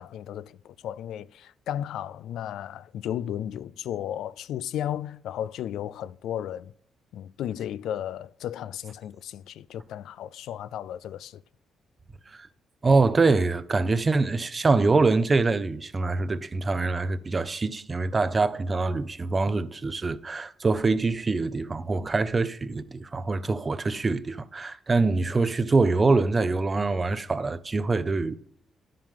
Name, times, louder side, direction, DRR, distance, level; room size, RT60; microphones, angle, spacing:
voice 1, 0.0-6.7 7.1-11.4, left 10 dB, 85° left, 0.3 m, -34 dB
voice 2, 12.8-28.4, right 3 dB, 30° right, 0.6 m, -24 dB
10.5 x 7.5 x 3.7 m
cardioid pair, 100°, 0 cm